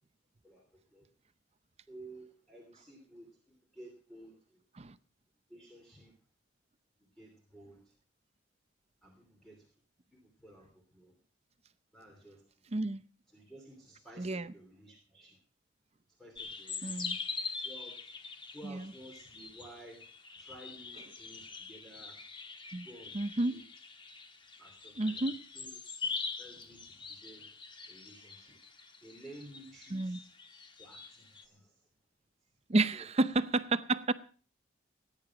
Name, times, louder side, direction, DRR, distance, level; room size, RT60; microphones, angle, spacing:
voice 1, 0.4-1.1 1.9-4.6 5.5-6.1 7.1-7.9 9.0-9.7 10.1-11.1 11.9-12.4 13.3-15.4 16.2-17.3 17.6-18.1 18.5-20.1 20.3-22.2 22.8-23.6 24.6-25.7 26.4-27.6 27.9-28.6 29.0-30.3 30.8-31.9 32.9-33.1, right 1 dB, ahead, 3.0 m, -54 dB
voice 2, 12.7-13.0 14.2-14.5 16.8-17.2 18.6-18.9 22.7-22.9 23.1-23.6 25.0-25.4 29.9-30.2 32.7-34.1, right 2 dB, 30° right, 0.6 m, -31 dB
sound 1, 16.4-31.4, left 4 dB, 25° left, 1.4 m, -43 dB
18.5 x 9.9 x 5.9 m
head